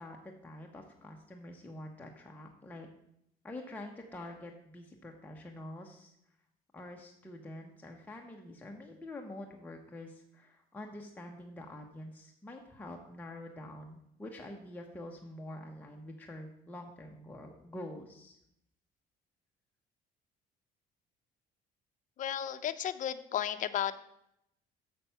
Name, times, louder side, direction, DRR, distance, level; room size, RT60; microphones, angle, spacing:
voice 1, 0.0-2.9 3.4-6.1 6.7-18.4, left 1 dB, 10° left, 0 dB, 0.9 m, -46 dB
voice 2, 22.2-24.0, left 10 dB, 50° left, 10 dB, 0.6 m, -34 dB
6.9 x 6.0 x 5.6 m, 0.77 s
cardioid pair, 110°, 17 cm